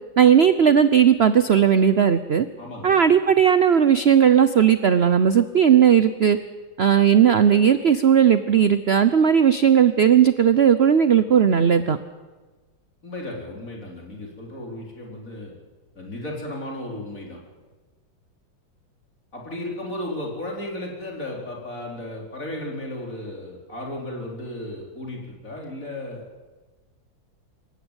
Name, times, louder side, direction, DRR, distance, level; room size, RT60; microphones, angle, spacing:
voice 1, 0.2-2.5 2.8-6.4 6.8-12.0, right 8 dB, 60° right, 12 dB, 0.6 m, -17 dB
voice 2, 2.6-3.0 13.0-15.5 15.9-17.4 19.3-26.2, left 1 dB, 40° left, -1 dB, 4.7 m, -34 dB
26.5 x 14.5 x 9.0 m, 1.3 s
omnidirectional pair, 2.1 m